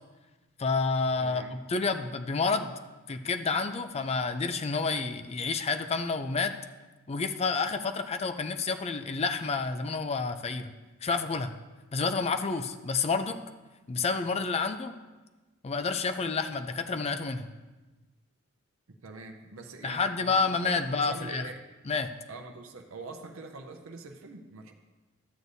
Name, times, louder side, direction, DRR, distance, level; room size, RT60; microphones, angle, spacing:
voice 1, 0.6-2.7 3.1-6.5 7.1-10.7 11.0-11.5 11.9-13.4 13.9-14.9 15.6-17.5 19.8-21.5 21.9-22.1, left 4 dB, 30° left, 8 dB, 0.4 m, -29 dB
voice 2, 1.2-1.5 18.9-21.6 22.3-24.7, right 3 dB, 85° right, 4 dB, 0.7 m, -44 dB
12.5 x 8.0 x 2.7 m, 1.2 s
head